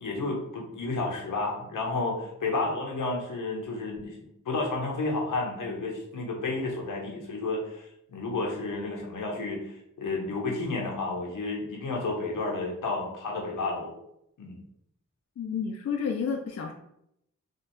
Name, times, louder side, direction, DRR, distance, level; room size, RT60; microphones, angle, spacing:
voice 1, 0.0-7.8 8.1-9.6 10.0-13.9 14.4-14.6, left 3 dB, 85° left, -1 dB, 0.8 m, -31 dB
voice 2, 15.4-16.7, left 6 dB, 55° left, 2 dB, 0.4 m, -30 dB
3.2 x 2.4 x 3.0 m, 0.77 s
cardioid pair, 55°, 31 cm